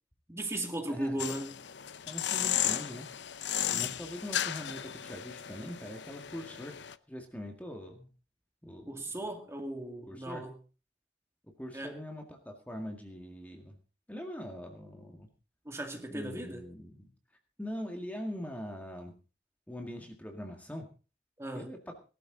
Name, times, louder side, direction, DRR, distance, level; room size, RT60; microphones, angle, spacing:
voice 1, 0.3-1.6 3.6-3.9 8.9-10.6 11.7-12.0 15.7-16.7 21.4-21.7, right 1 dB, 15° right, 2.3 m, -37 dB
voice 2, 0.9-1.2 2.1-6.8 7.1-8.1 8.6-8.9 10.1-10.4 11.4-13.8 14.1-15.3 16.1-17.1 17.6-19.1 19.7-20.9 21.6-21.8, equal, 10° left, 1.9 m, -42 dB
sound 1, 1.2-6.9, left 10 dB, 70° left, 0.7 m, -35 dB
19.0 x 12.5 x 3.9 m
head